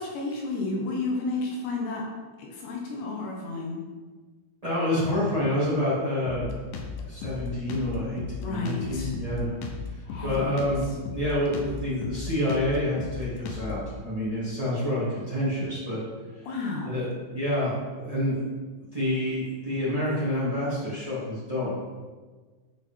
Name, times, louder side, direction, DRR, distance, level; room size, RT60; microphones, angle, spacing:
voice 1, 0.0-2.1 2.4-3.8 8.4-9.1 10.1-10.7 16.4-17.0, left 3 dB, 70° left, -1 dB, 3.4 m, -32 dB
voice 2, 4.6-6.6 7.0-9.5 9.9-10.8 11.1-16.0 16.8-18.4 18.9-21.7, left 1 dB, 70° right, -9 dB, 0.3 m, -28 dB
Drum kit, 6.3-13.9, left 5 dB, 90° left, 2.0 m, -36 dB
11.0 x 5.8 x 4.6 m, 1.4 s
omnidirectional pair, 5.7 m